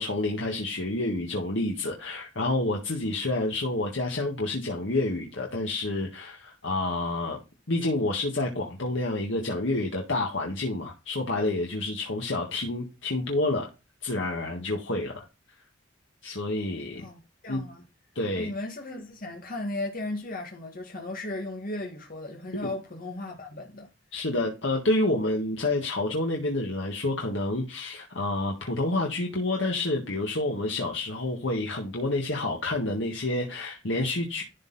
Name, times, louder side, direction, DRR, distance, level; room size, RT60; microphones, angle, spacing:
voice 1, 0.0-7.4 7.7-13.7 14.0-15.3 16.2-17.1 17.5-17.6 18.2-18.5 24.1-34.4, left 2 dB, 70° left, 1.7 m, -28 dB
voice 2, 17.0-17.8 18.4-23.9, left 2 dB, 50° left, 2.0 m, -36 dB
12.0 x 4.1 x 4.1 m
head